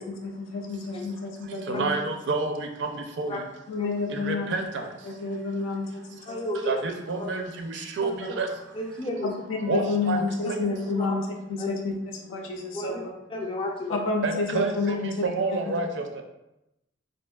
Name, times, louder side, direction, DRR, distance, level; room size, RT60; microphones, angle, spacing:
voice 1, 0.1-1.9 3.7-4.5 5.0-6.4 8.2-8.3 9.2-13.0 13.9-15.1 15.7-15.8, left 3 dB, 80° left, 2 dB, 0.6 m, -30 dB
voice 2, 1.7-3.4 4.1-4.9 6.6-8.5 9.7-10.2 10.5-10.6 14.2-16.2, right 3 dB, 65° right, 4 dB, 0.4 m, -29 dB
voice 3, 6.3-6.7 8.0-8.1 8.7-9.3 11.0-11.2 11.6-11.7 12.7-13.0 13.3-14.0, left 1 dB, 25° left, 0 dB, 0.4 m, -32 dB
4.3 x 2.6 x 2.2 m, 0.90 s
head